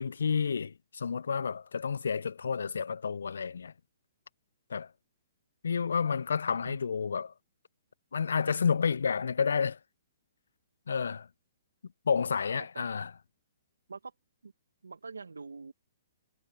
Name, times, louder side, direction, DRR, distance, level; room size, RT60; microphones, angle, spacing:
voice 1, 0.0-3.7 4.7-4.9 5.6-7.3 8.1-9.8 10.9-11.3 12.1-13.1, left 6 dB, 75° left, 0.4 m, -30 dB
voice 2, 12.5-12.9 13.9-14.1 14.4-14.5 14.8-15.7, right 4 dB, 90° right, 1.2 m, -44 dB
hypercardioid pair, 130°, 0 cm